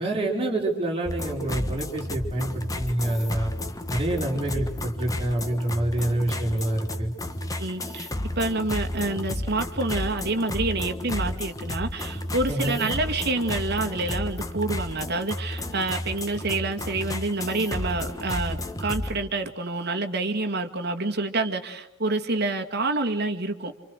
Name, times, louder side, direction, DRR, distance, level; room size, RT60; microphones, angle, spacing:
voice 1, 0.0-3.5 3.9-7.1 12.5-12.9, right 1 dB, 25° right, -1 dB, 5.4 m, -27 dB
sound 1, 1.0-19.2, left 1 dB, 15° left, 1.4 m, -32 dB
voice 2, 7.6-8.1 8.4-23.8, right 2 dB, 55° right, 5 dB, 2.1 m, -28 dB
29.5 x 27.0 x 6.6 m, 0.84 s
head